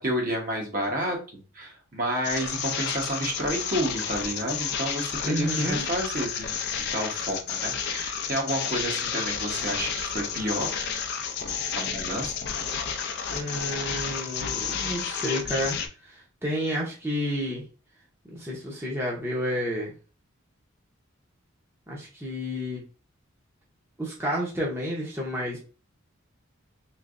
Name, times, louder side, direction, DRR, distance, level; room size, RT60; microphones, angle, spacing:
voice 1, 0.0-10.7 11.8-12.3 12.8-13.2, right 1 dB, 40° right, 0 dB, 1.0 m, -30 dB
sound 1, 2.2-15.9, left 7 dB, 55° left, 0.5 m, -31 dB
voice 2, 5.2-5.8 13.3-17.6 18.3-19.9 21.9-22.8 24.0-25.6, equal, 10° right, -4 dB, 0.8 m, -30 dB
3.3 x 3.1 x 2.5 m, 0.33 s
head